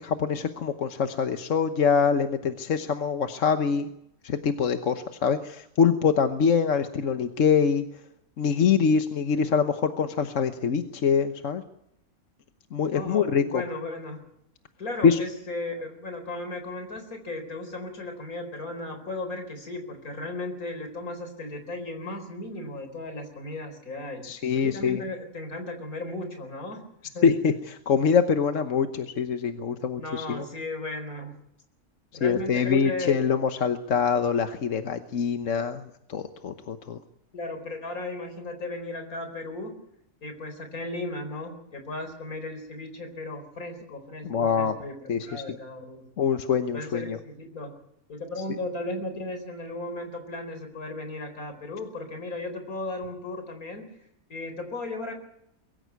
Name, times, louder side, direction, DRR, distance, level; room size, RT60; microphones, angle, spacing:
voice 1, 0.0-3.9 4.2-7.8 8.4-11.6 12.7-13.6 15.0-15.2 24.2-25.0 27.2-30.4 32.2-35.8 36.1-37.0 44.2-44.8 45.1-45.4 46.2-47.2, left 6 dB, 60° left, 8 dB, 1.4 m, -24 dB
voice 2, 12.9-14.2 14.8-24.2 24.5-26.8 27.1-27.3 30.0-31.4 32.1-33.2 37.3-39.8 40.2-46.1 46.7-47.7 48.1-53.9 54.3-55.1, left 2 dB, 75° left, 6 dB, 4.7 m, -36 dB
23.0 x 14.5 x 9.4 m, 0.78 s
omnidirectional pair, 1.5 m